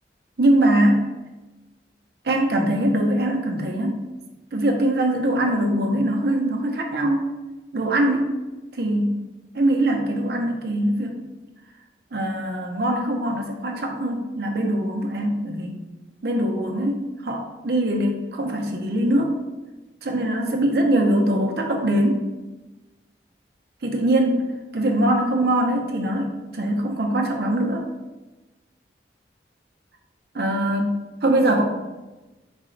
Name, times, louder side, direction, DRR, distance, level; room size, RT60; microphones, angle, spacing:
voice 1, 0.4-1.1 2.2-4.0 4.5-7.3 7.7-8.4 8.8-9.2 9.5-11.3 12.1-15.7 16.2-19.4 20.0-22.2 23.8-27.9 30.3-31.6, right 1 dB, 60° right, 2 dB, 0.6 m, -22 dB
4.1 x 2.2 x 3.7 m, 1.1 s
head